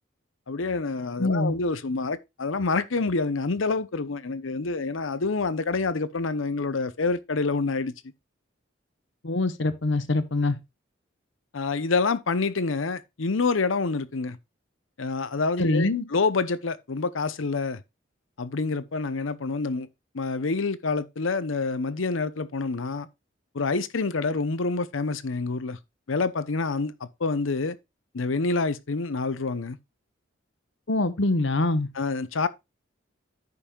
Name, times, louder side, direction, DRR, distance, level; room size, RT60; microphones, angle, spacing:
voice 1, 0.5-7.9 11.5-14.4 15.0-17.8 18.4-19.9 20.1-23.1 23.5-25.8 26.1-27.8 28.1-29.8 32.0-32.5, left 3 dB, 90° left, 0.8 m, -27 dB
voice 2, 1.2-1.5 9.2-10.6 15.6-16.0 30.9-31.9, left 2 dB, 65° left, 1.1 m, -24 dB
14.5 x 5.4 x 2.4 m
head